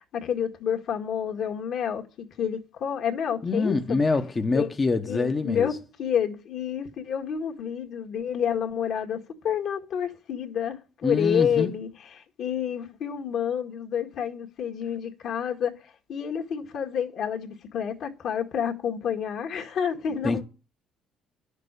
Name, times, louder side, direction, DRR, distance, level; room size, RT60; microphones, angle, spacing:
voice 1, 0.1-4.0 4.5-4.7 5.1-9.2 9.4-20.4, left 8 dB, 60° left, 1.8 m, -29 dB
voice 2, 3.4-5.8 11.0-11.7 20.2-20.4, left 3 dB, 25° left, 0.8 m, -25 dB
11.0 x 6.6 x 6.7 m
cardioid pair, 115°, 0 cm